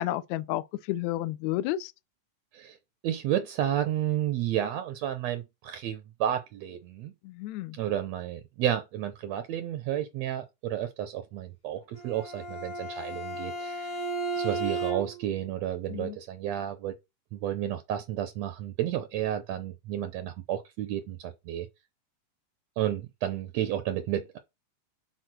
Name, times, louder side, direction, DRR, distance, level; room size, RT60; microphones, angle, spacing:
voice 1, 0.0-1.9 7.2-7.8 15.9-16.2, left 14 dB, 85° left, 1.6 m, -31 dB
voice 2, 3.0-7.1 7.7-14.0 14.4-16.9 17.3-21.7 22.8-24.4, right 11 dB, 80° right, 1.5 m, -31 dB
Bowed string instrument, 11.9-15.3, right 3 dB, 40° left, 1.3 m, -34 dB
6.4 x 4.3 x 6.0 m
omnidirectional pair, 3.9 m